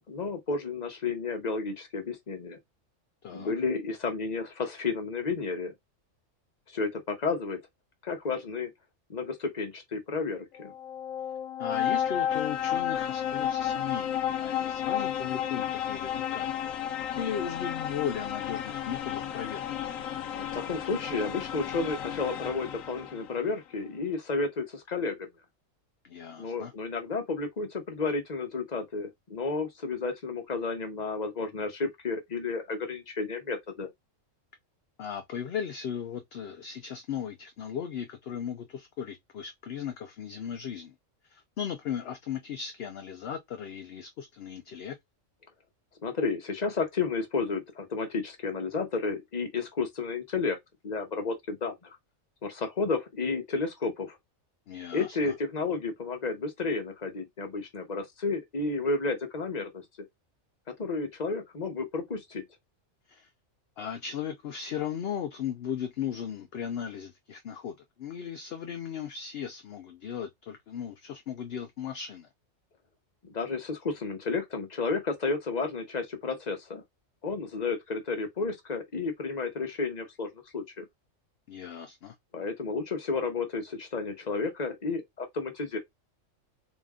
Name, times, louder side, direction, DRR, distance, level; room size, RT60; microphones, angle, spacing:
voice 1, 0.1-2.6 3.3-5.7 6.7-7.6 8.0-8.7 9.1-10.7 20.3-25.3 26.4-33.9 46.0-50.6 50.8-51.9 52.4-54.2 54.9-59.8 60.8-62.4 73.2-76.8 77.2-80.8 82.3-85.8, left 4 dB, 35° left, 1.1 m, -32 dB
voice 2, 3.2-3.5 11.6-16.5 16.9-19.6 26.0-26.7 35.0-40.9 41.3-45.0 54.7-55.3 63.1-63.3 63.8-72.3 81.5-82.1, left 8 dB, 60° left, 0.7 m, -37 dB
sound 1, 10.5-23.4, left 10 dB, 85° left, 1.0 m, -32 dB
4.1 x 2.5 x 3.6 m
omnidirectional pair, 1.3 m